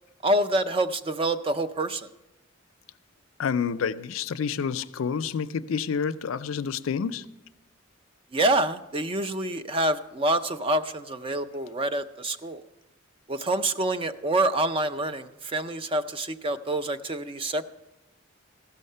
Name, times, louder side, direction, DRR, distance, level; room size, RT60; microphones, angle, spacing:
voice 1, 0.2-2.1 8.3-12.6 13.3-17.7, right 1 dB, 25° right, 0.4 m, -27 dB
voice 2, 3.4-7.3, left 6 dB, 80° left, 0.4 m, -28 dB
14.5 x 6.5 x 5.4 m
head